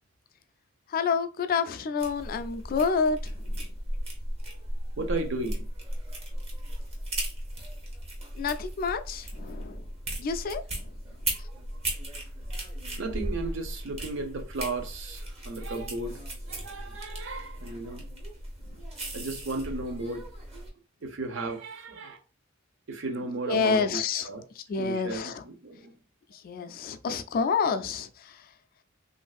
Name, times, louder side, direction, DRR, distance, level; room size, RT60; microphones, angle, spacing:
voice 1, 0.9-3.7 8.4-9.9 10.2-10.6 23.5-24.3 24.6-25.4 26.3-28.4, left 5 dB, 45° left, 0.3 m, -28 dB
sound 1, 2.0-20.7, right 1 dB, 30° right, 0.8 m, -36 dB
voice 2, 5.0-5.7 13.0-16.2 16.5-18.0 19.1-20.2 21.0-22.2 22.9-24.5 24.8-25.9, right 3 dB, 65° right, 0.6 m, -34 dB
3.1 x 2.5 x 2.3 m
head